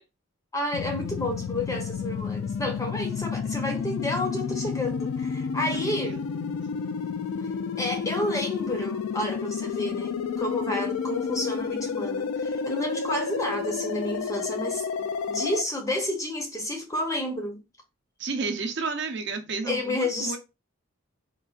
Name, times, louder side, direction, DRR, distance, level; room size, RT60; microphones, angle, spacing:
voice 1, 0.5-6.1 7.8-17.6 19.7-20.4, left 1 dB, 15° left, 0.6 m, -30 dB
sound 1, 0.7-15.6, left 6 dB, 80° left, 0.3 m, -31 dB
voice 2, 5.7-6.5 18.2-20.4, right 4 dB, 55° right, 0.6 m, -32 dB
3.9 x 2.4 x 2.3 m
head